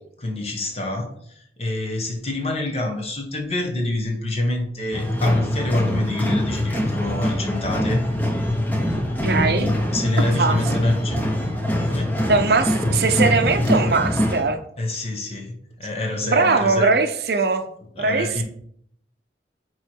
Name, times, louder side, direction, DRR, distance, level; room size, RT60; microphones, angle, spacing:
voice 1, 0.2-8.0 9.4-11.2 11.9-12.2 14.8-16.9 18.0-18.4, left 2 dB, 35° left, 2 dB, 1.3 m, -26 dB
sound 1, 4.9-14.4, left 1 dB, 10° left, 0.9 m, -23 dB
voice 2, 9.2-9.7 10.4-10.6 12.3-14.6 16.2-17.6 18.0-18.4, right 4 dB, 60° right, 8 dB, 0.7 m, -20 dB
8.9 x 3.2 x 4.6 m, 0.67 s
head